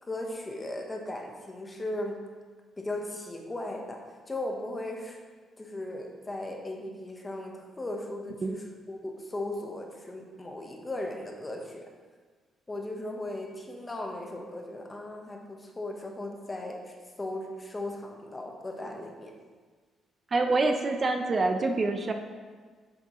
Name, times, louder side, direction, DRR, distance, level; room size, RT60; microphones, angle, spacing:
voice 1, 0.0-2.3 2.8-5.2 5.6-11.9 12.7-19.4, left 1 dB, 20° left, 2 dB, 1.1 m, -37 dB
voice 2, 20.3-22.1, right 3 dB, 35° right, 5 dB, 0.6 m, -26 dB
7.4 x 7.0 x 3.1 m, 1.5 s
cardioid pair, 90°, 0 cm